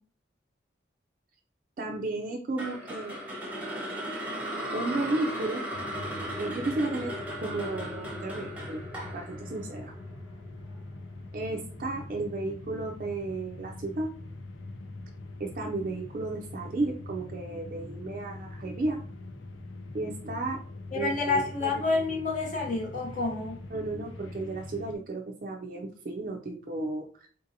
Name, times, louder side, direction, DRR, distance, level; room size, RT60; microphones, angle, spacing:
voice 1, 1.8-3.2 4.7-5.6 6.4-8.8 9.1-9.9 11.3-14.1 15.4-19.0 19.9-20.6 20.9-21.7 23.7-27.3, right 2 dB, 45° right, 1 dB, 0.4 m, -33 dB
sound 1, 2.6-10.8, equal, 10° right, 0.7 m, -37 dB
sound 2, 5.7-25.0, left 2 dB, 90° left, 0.5 m, -43 dB
voice 2, 20.9-23.6, left 3 dB, 40° left, 0 dB, 0.6 m, -29 dB
3.8 x 2.7 x 2.6 m, 0.43 s
head